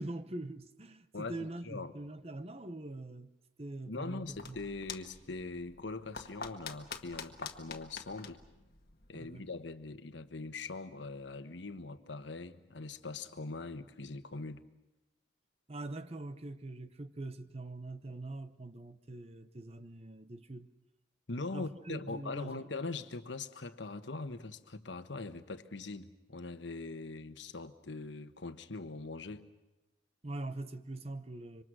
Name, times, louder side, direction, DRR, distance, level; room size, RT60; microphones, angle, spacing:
voice 1, 0.0-3.3 3.6-4.7 9.1-9.4 15.7-20.7 21.5-22.7 30.2-31.6, right 2 dB, 35° right, 0.8 m, -43 dB
voice 2, 3.9-8.4 9.1-14.6 21.3-29.5, left 3 dB, 80° left, 1.2 m, -42 dB
sound 1, 4.1-9.4, left 5 dB, 55° left, 1.6 m, -47 dB
26.5 x 24.5 x 6.2 m
head